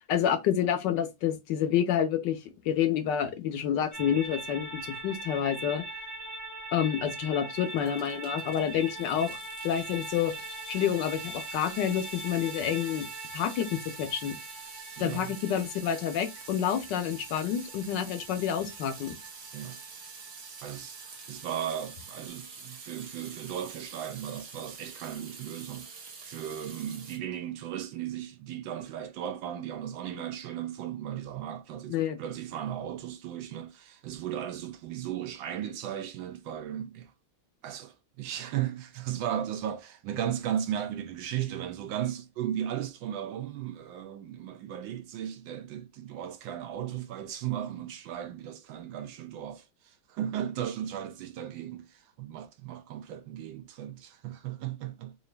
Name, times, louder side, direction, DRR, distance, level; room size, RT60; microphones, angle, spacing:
voice 1, 0.1-2.4 2.6-5.8 6.7-10.3 10.7-13.1 13.3-14.4 15.0-19.2 31.9-32.2, left 9 dB, 75° left, 1.2 m, -28 dB
sound 1, 3.9-22.3, right 2 dB, 15° right, 0.6 m, -42 dB
Water tap faucet / Sink (filling or washing) / Drip, 7.6-27.2, right 5 dB, 55° right, 0.8 m, -47 dB
voice 2, 15.0-15.3 19.5-19.8 20.6-37.1 37.6-55.2, right 10 dB, 75° right, 1.3 m, -36 dB
4.0 x 2.5 x 3.2 m
omnidirectional pair, 2.1 m